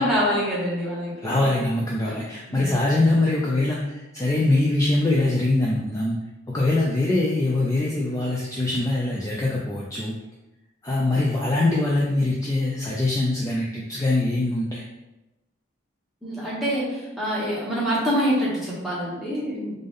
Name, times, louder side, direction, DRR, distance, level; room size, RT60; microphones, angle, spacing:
voice 1, 0.0-1.5 2.1-2.2 2.5-2.7 16.2-19.7, equal, ahead, -9 dB, 1.1 m, -25 dB
voice 2, 1.2-6.1 6.5-10.1 10.8-14.8, left 2 dB, 15° left, -4 dB, 0.3 m, -23 dB
3.4 x 2.6 x 3.6 m, 1.0 s
head